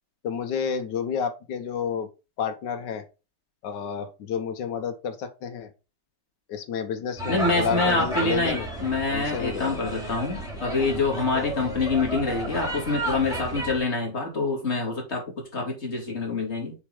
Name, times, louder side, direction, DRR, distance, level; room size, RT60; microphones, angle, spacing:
voice 1, 0.2-2.1 2.4-3.1 3.6-5.7 6.5-8.7 9.1-9.9, left 7 dB, 85° left, 1.6 m, -30 dB
sound 1, 7.2-13.8, right 1 dB, ahead, 3.0 m, -32 dB
voice 2, 7.3-16.7, left 3 dB, 40° left, 2.9 m, -26 dB
7.0 x 4.4 x 4.8 m
omnidirectional pair, 1.8 m